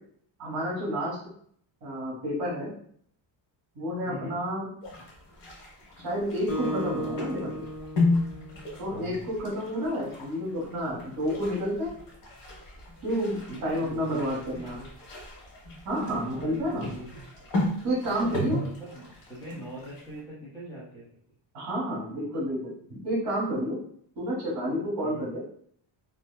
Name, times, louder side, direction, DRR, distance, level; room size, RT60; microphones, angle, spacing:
voice 1, 0.4-1.2 1.8-2.7 3.7-4.7 6.0-7.6 8.8-11.9 13.0-14.8 15.8-16.9 17.8-18.6 21.5-23.8 24.2-25.4, equal, 55° right, -6 dB, 1.1 m, -30 dB
voice 2, 4.0-4.4 8.9-9.2 13.5-14.9 16.2-17.1 18.0-21.0 25.0-25.3, right 1 dB, 10° left, -9 dB, 0.9 m, -42 dB
sound 1, 4.8-20.2, left 2 dB, 75° left, 1.1 m, -35 dB
Acoustic guitar, 6.5-9.2, equal, 45° left, 0.7 m, -35 dB
2.7 x 2.1 x 2.2 m, 0.62 s
cardioid pair, 165°, 45 cm